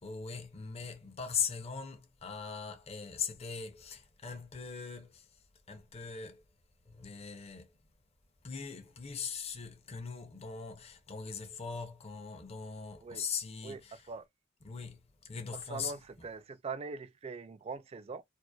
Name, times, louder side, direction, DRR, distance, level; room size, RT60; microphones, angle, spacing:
voice 1, 0.0-6.4 6.8-7.8 8.4-14.1 14.6-15.9, left 6 dB, 30° left, 0.5 m, -40 dB
voice 2, 15.5-18.2, right 4 dB, 30° right, 0.3 m, -42 dB
2.7 x 2.1 x 2.2 m
head